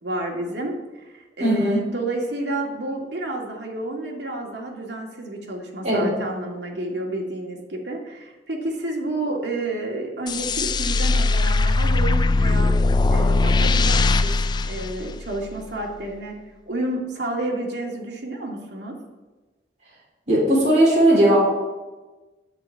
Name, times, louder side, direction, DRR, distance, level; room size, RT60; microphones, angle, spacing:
voice 1, 0.0-12.7 13.1-14.3 14.7-16.4 16.7-18.9, right 2 dB, 75° right, 0 dB, 2.1 m, -30 dB
voice 2, 1.4-1.8 5.8-6.1 20.3-21.4, right 1 dB, 45° right, -6 dB, 3.5 m, -17 dB
sound 1, 10.3-15.6, left 3 dB, 25° left, 0.4 m, -20 dB
10.5 x 8.5 x 4.5 m, 1.2 s
head